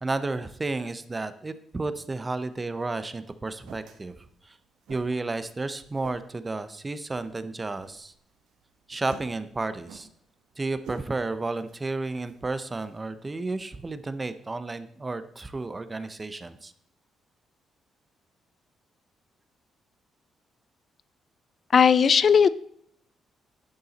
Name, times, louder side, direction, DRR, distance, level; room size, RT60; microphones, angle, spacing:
voice 1, 0.0-4.1 4.4-4.5 4.9-8.1 8.9-10.1 10.6-16.7, right 3 dB, 15° right, 12 dB, 0.5 m, -32 dB
sound 1, 2.5-13.2, right 6 dB, 80° right, 1.0 m, -52 dB
voice 2, 21.7-22.5, left 7 dB, 35° left, 17 dB, 0.3 m, -17 dB
10.5 x 7.0 x 4.0 m, 0.68 s
cardioid pair, 160°, 0 cm